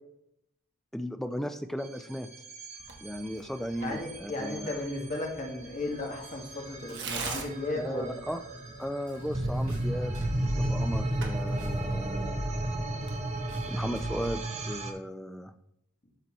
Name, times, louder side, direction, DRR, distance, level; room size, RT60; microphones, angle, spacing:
voice 1, 0.9-2.3 3.0-4.7 7.8-8.4 8.8-12.5 13.7-15.5, equal, ahead, 8 dB, 0.4 m, -36 dB
sound 1, 1.8-14.9, right 1 dB, 30° right, 0.8 m, -34 dB
Tearing, 2.8-14.3, right 4 dB, 55° right, 1.1 m, -46 dB
voice 2, 3.8-8.1, left 2 dB, 35° left, 0 dB, 1.6 m, -35 dB
sound 2, 9.3-14.3, equal, 75° right, 2.8 m, -42 dB
12.0 x 4.1 x 3.0 m, 0.78 s
head